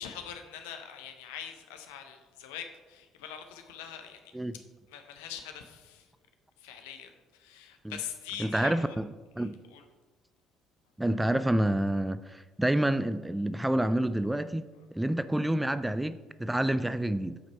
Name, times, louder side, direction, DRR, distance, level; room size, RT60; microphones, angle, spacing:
voice 1, 0.0-4.3 4.9-6.1 6.6-9.0 9.4-9.8 14.7-14.9, left 9 dB, 65° left, 0.7 m, -43 dB
voice 2, 8.4-9.1 9.4-9.6 11.0-14.7 14.9-17.4, right 1 dB, 10° right, 0.3 m, -28 dB
8.6 x 5.2 x 4.2 m
figure-of-eight pair, 50°, 0 cm